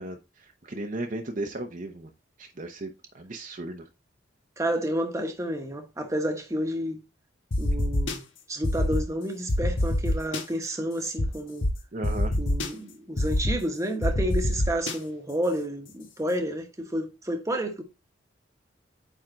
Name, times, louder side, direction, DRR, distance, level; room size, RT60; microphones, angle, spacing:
voice 1, 0.0-2.1 2.4-3.9 11.9-12.4, right 2 dB, 45° right, 0.7 m, -36 dB
voice 2, 4.6-7.0 7.6-8.2 8.5-11.7 12.4-17.8, equal, 15° right, 1.1 m, -30 dB
sound 1, 7.5-8.1 8.6-9.0 9.5-10.4 11.2-11.3 11.6-11.7 12.0-12.7 13.2-13.5 14.0-14.9, left 1 dB, 90° left, 1.3 m, -24 dB
9.0 x 3.7 x 3.8 m
head